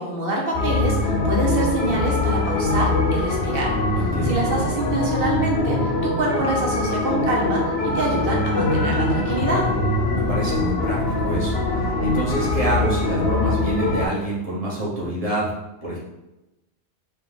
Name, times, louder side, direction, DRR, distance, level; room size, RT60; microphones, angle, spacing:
voice 1, 0.0-3.8 4.2-9.7, right 2 dB, 60° right, -2 dB, 1.1 m, -26 dB
sound 1, 0.5-14.1, left 2 dB, 70° left, 0.9 m, -23 dB
voice 2, 4.0-4.4 10.1-15.5 15.8-16.0, right 1 dB, 35° right, -6 dB, 1.2 m, -26 dB
4.2 x 2.4 x 3.7 m, 0.97 s
omnidirectional pair, 1.1 m